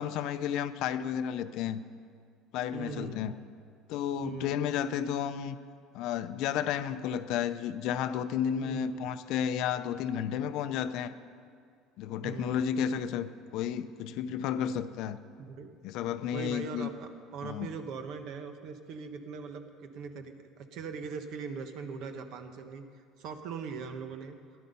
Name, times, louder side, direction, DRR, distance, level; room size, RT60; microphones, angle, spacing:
voice 1, 0.0-1.8 2.5-3.3 3.9-5.6 5.9-11.1 12.0-15.2 15.8-16.9 17.4-17.7, left 9 dB, 60° left, 12 dB, 0.6 m, -32 dB
voice 2, 2.7-3.3 4.2-4.6 8.6-9.1 12.2-12.6 15.4-15.7 16.3-22.8 23.2-24.4, right 5 dB, 55° right, 7 dB, 1.2 m, -41 dB
17.0 x 11.5 x 5.5 m, 2.2 s
cardioid pair, 150°, 0 cm